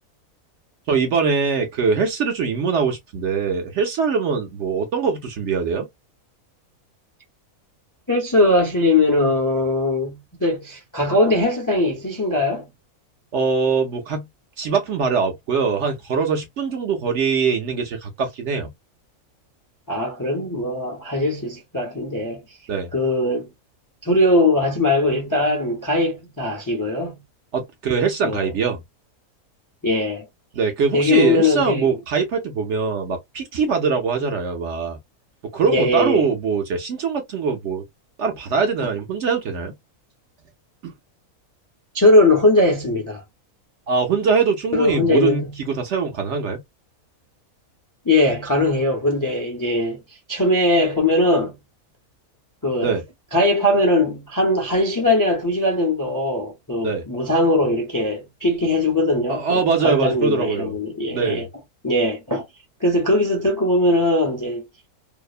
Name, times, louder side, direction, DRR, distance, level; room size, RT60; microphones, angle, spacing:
voice 1, 0.9-5.9 13.3-14.2 14.6-18.7 22.7-22.9 27.5-28.8 30.5-35.0 35.5-37.8 38.2-39.7 40.8-40.9 43.9-46.6 52.8-53.0 56.8-57.0 59.3-60.7 61.1-61.5, right 5 dB, 60° right, 0.8 m, -22 dB
voice 2, 8.1-12.7 19.9-22.4 22.9-23.5 24.0-27.2 28.2-28.5 29.8-30.3 30.9-31.9 35.7-36.3 41.9-43.2 44.7-45.6 48.0-50.0 50.3-51.6 52.6-52.9 53.3-61.5 61.8-62.4 62.8-64.7, left 2 dB, 25° left, 0.4 m, -20 dB
2.7 x 2.0 x 2.3 m
omnidirectional pair, 1.5 m